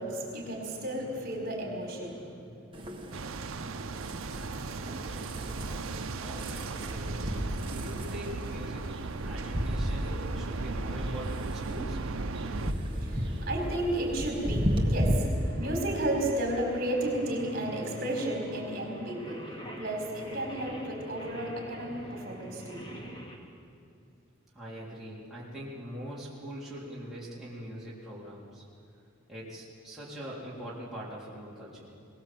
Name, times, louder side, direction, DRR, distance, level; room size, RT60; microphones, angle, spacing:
voice 1, 0.0-2.2 12.3-23.0, right 1 dB, 45° right, 0 dB, 4.3 m, -33 dB
sound 1, 2.7-15.1, equal, 25° right, 1.6 m, -34 dB
sound 2, 3.1-12.7, right 4 dB, 80° right, 0.7 m, -37 dB
voice 2, 4.2-4.8 5.1-7.3 7.6-8.9 9.2-12.0 24.5-28.6 29.3-32.0, equal, ahead, -8 dB, 3.7 m, -43 dB
Singing, 15.6-23.4, equal, 25° left, 2.4 m, -46 dB
22.5 x 19.0 x 7.7 m, 2.4 s
head